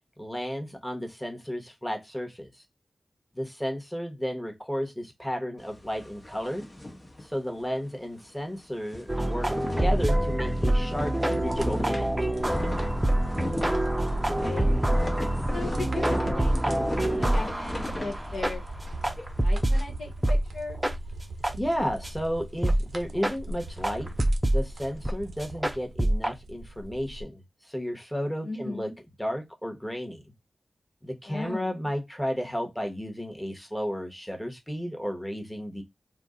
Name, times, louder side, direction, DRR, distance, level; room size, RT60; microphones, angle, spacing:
voice 1, 0.2-2.5 3.3-6.7 7.2-12.1 21.5-24.1 24.5-27.4 27.7-28.9 29.2-30.2 31.0-35.8, equal, 5° left, 0.9 m, -33 dB
sound 1, 5.6-7.9 8.2-8.3 8.6-19.8, left 1 dB, 35° left, 0.9 m, -38 dB
sound 2, 9.1-19.8 20.2-20.4 20.8-20.9 21.4-21.5 22.0-22.1 22.6-22.8 23.2-23.3 23.8-24.6 25.0-25.1 25.4-26.3, right 1 dB, 10° right, 0.5 m, -26 dB
sound 3, 11.3-27.2, right 1 dB, 80° right, 0.5 m, -40 dB
voice 2, 14.1-14.8 15.5-19.0 19.4-20.8 28.4-28.9 31.3-31.9, left 2 dB, 80° left, 1.0 m, -38 dB
2.5 x 2.0 x 3.6 m
cardioid pair, 45°, 0 cm